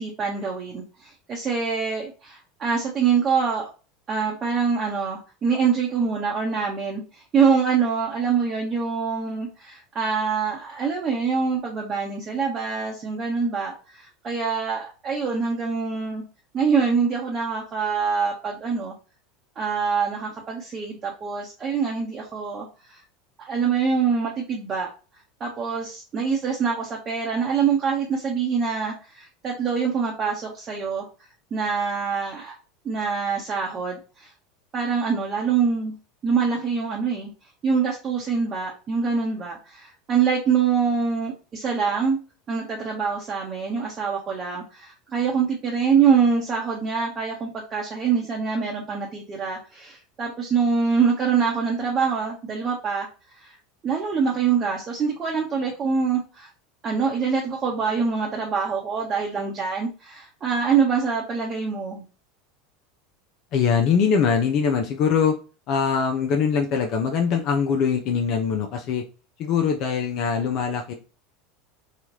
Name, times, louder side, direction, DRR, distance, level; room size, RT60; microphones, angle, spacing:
voice 1, 0.0-3.7 4.1-16.2 16.5-18.9 19.6-23.0 23.5-24.9 25.4-31.1 31.5-32.6 32.8-34.3 34.7-35.9 36.2-37.3 37.6-42.2 42.5-53.1 53.4-53.6 53.8-56.5 56.8-62.0, right 6 dB, 35° right, -2 dB, 0.8 m, -25 dB
voice 2, 63.5-65.3 65.7-69.0 69.4-70.9, left 6 dB, 50° left, 3 dB, 0.5 m, -22 dB
3.0 x 2.4 x 2.8 m, 0.34 s
hypercardioid pair, 80°, 0 cm